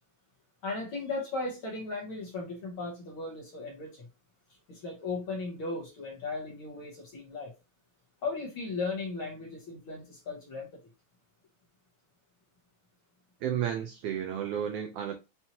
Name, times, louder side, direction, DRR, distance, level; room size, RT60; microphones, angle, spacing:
voice 1, 0.6-4.1 4.7-7.5 8.2-10.7, left 3 dB, 60° left, 1.6 m, -36 dB
voice 2, 13.4-15.1, right 9 dB, 85° right, 1.3 m, -32 dB
5.9 x 2.7 x 2.8 m
omnidirectional pair, 3.3 m